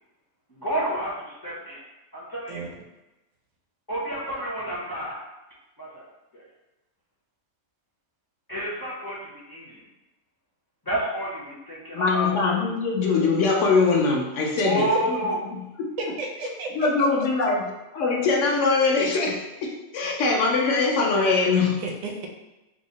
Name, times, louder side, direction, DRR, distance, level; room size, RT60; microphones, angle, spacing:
voice 1, 0.5-1.8 2.1-2.6 3.9-5.2 5.8-6.0 6.3-6.5 8.5-9.8 10.8-12.3 14.6-15.4, right 1 dB, 25° left, -7 dB, 0.5 m, -30 dB
voice 2, 11.9-15.2 15.5-15.9 16.7-21.8, left 4 dB, 65° left, -1 dB, 0.9 m, -22 dB
voice 3, 16.0-17.1 21.8-22.3, right 3 dB, 75° right, 1 dB, 1.0 m, -32 dB
3.6 x 2.0 x 3.8 m, 1.0 s
omnidirectional pair, 1.5 m